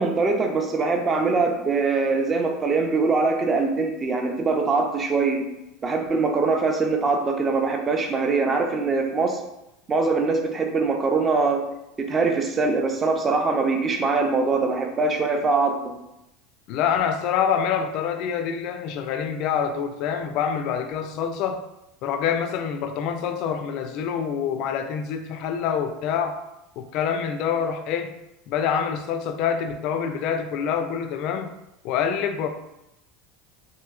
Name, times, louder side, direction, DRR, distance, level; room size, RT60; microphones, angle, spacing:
voice 1, 0.0-5.5 5.8-9.4 9.9-11.6 12.0-15.9, right 4 dB, 25° right, 3 dB, 0.5 m, -23 dB
voice 2, 16.7-21.6 22.0-26.4 26.8-28.1 28.5-31.5 31.8-32.5, left 7 dB, 60° left, 7 dB, 0.3 m, -26 dB
2.9 x 2.6 x 2.3 m, 0.89 s
supercardioid pair, 110°, 0 cm